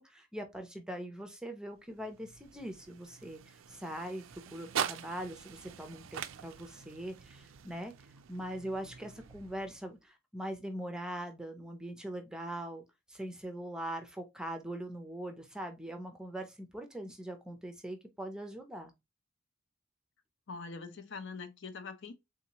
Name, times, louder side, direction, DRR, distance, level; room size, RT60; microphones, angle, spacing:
voice 1, 0.0-7.9 8.3-12.8 13.1-18.9, right 1 dB, 5° right, 0.5 m, -42 dB
sound 1, 1.7-10.0, right 9 dB, 75° right, 0.4 m, -43 dB
voice 2, 20.5-22.1, left 4 dB, 60° left, 0.5 m, -43 dB
3.6 x 2.7 x 2.9 m
head